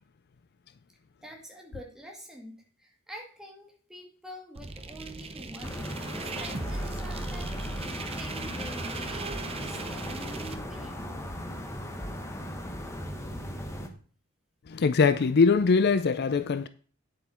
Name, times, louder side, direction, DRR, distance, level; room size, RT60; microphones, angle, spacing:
voice 1, 1.2-11.0, equal, 5° right, 2.1 m, -46 dB
sound 1, 4.5-10.5, right 3 dB, 30° right, 0.8 m, -38 dB
sound 2, 5.6-13.9, left 1 dB, 15° left, 1.2 m, -37 dB
voice 2, 14.7-16.7, left 4 dB, 50° left, 0.4 m, -22 dB
9.4 x 7.8 x 4.3 m
head